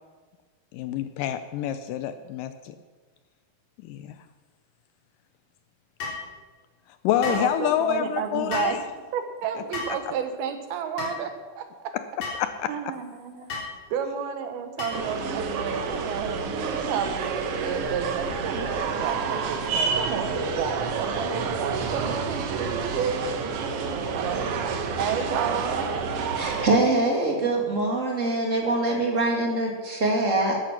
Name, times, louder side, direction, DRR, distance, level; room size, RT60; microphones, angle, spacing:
voice 1, 0.7-2.8 3.8-4.2 7.0-8.8 12.4-12.7, left 10 dB, 80° left, 10 dB, 2.0 m, -27 dB
sound 1, 6.0-6.2 7.2-7.5 8.5-8.8 9.7-10.0 11.0-11.2 12.2-12.4 13.5-13.7 14.8-15.1, left 4 dB, 35° left, 4.2 m, -32 dB
voice 2, 7.2-8.8 9.1-11.3 11.6-11.7 12.7-13.6 13.9-16.6 16.9-17.3 17.6-23.2 24.1-24.5 25.0-25.9, right 7 dB, 90° right, 7 dB, 3.2 m, -31 dB
sound 2, 14.9-26.7, right 5 dB, 70° right, 1.4 m, -29 dB
voice 3, 26.3-30.6, right 2 dB, 25° right, 0 dB, 2.0 m, -24 dB
12.5 x 12.5 x 5.9 m, 1.4 s
omnidirectional pair, 4.2 m